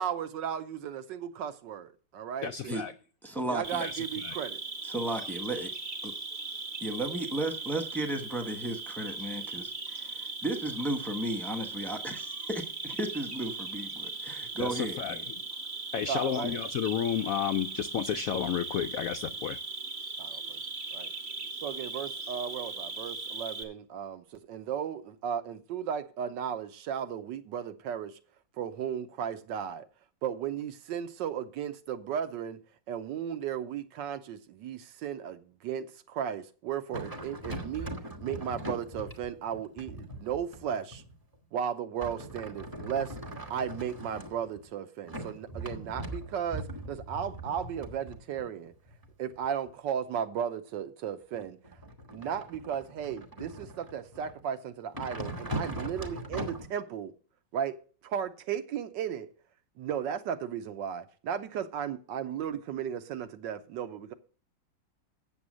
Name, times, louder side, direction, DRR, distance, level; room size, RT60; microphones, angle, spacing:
voice 1, 0.0-2.7 3.5-4.6 16.1-16.5 20.2-20.6 20.9-21.1 21.6-28.2 28.6-29.9 30.2-32.6 32.9-37.9 38.2-41.0 41.5-43.2 43.5-48.7 49.2-51.6 52.1-57.1 57.5-57.8 58.0-59.3 59.8-64.1, right 8 dB, 75° right, 1.3 m, -35 dB
voice 2, 2.4-2.9 3.8-4.4 14.6-15.3 15.9-19.6, left 8 dB, 90° left, 0.7 m, -32 dB
voice 3, 3.2-3.9 4.8-5.7 6.0-6.1 6.8-15.2, right 1 dB, ahead, 0.6 m, -34 dB
Cricket, 3.6-23.6, right 3 dB, 40° right, 1.3 m, -39 dB
sound 1, 36.9-41.3 42.0-44.7 45.1-49.7 51.3-54.4 54.9-56.7, right 1 dB, 15° right, 1.0 m, -40 dB
8.8 x 7.1 x 6.2 m
omnidirectional pair, 2.1 m